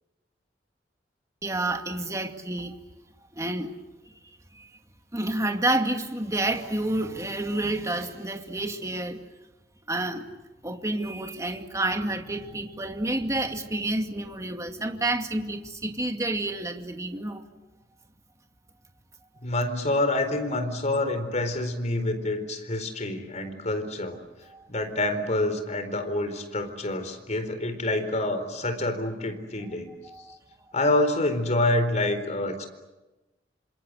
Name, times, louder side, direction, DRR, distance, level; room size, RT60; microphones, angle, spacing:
voice 1, 1.4-2.8 3.3-3.7 4.1-4.7 5.1-9.2 9.9-10.3 10.6-17.5 24.5-24.6 30.0-30.4, right 2 dB, 20° right, 4 dB, 2.3 m, -29 dB
voice 2, 19.4-24.2 24.7-29.9 30.7-32.7, left 2 dB, 40° left, 8 dB, 4.3 m, -27 dB
27.5 x 26.5 x 8.0 m, 1.1 s
head